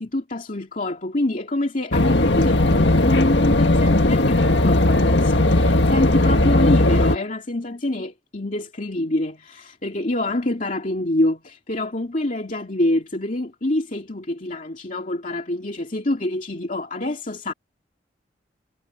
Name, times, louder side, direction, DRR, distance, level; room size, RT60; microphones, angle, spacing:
voice 1, 0.0-17.5, left 1 dB, 45° left, 2.5 m, -26 dB
sound 1, 1.9-7.2, left 2 dB, 85° left, 1.7 m, -17 dB
head